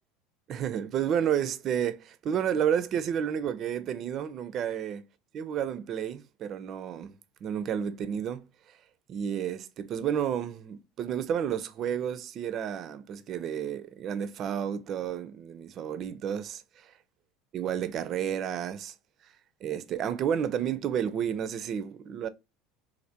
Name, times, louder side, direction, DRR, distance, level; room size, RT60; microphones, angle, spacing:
voice 1, 0.5-5.0 5.3-7.2 7.4-8.4 9.1-16.6 17.5-18.9 19.6-22.3, right 9 dB, 50° right, 0.4 m, -31 dB
3.2 x 2.4 x 2.7 m
hypercardioid pair, 85°, 0 cm